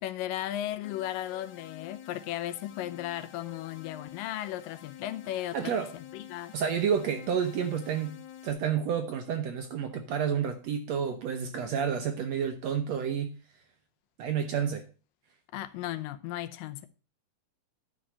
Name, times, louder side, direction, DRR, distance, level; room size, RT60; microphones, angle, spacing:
voice 1, 0.0-5.7 6.1-6.6 15.5-16.9, left 13 dB, 85° left, 2.4 m, -35 dB
sound 1, 0.8-8.5, left 10 dB, 65° left, 2.1 m, -49 dB
voice 2, 5.5-5.9 6.5-8.1 8.4-13.3 14.2-14.9, right 7 dB, 70° right, 1.7 m, -30 dB
11.0 x 5.2 x 5.6 m
omnidirectional pair, 3.9 m